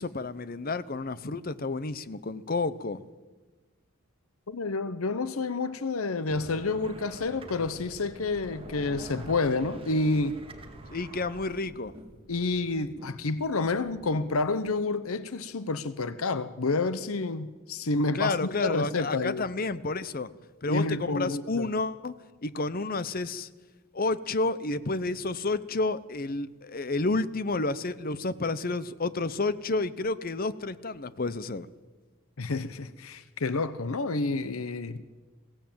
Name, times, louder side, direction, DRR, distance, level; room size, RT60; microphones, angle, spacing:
voice 1, 0.0-3.0 10.9-11.9 18.1-20.3 20.6-22.1 22.4-23.5 23.9-31.7, left 3 dB, 45° left, 0.8 m, -30 dB
voice 2, 4.5-10.4 12.3-19.4 20.7-21.7 32.4-35.2, left 3 dB, 85° left, 0.9 m, -29 dB
sound 1, 6.3-14.7, right 1 dB, 25° right, 2.0 m, -47 dB
21.5 x 16.5 x 8.8 m
head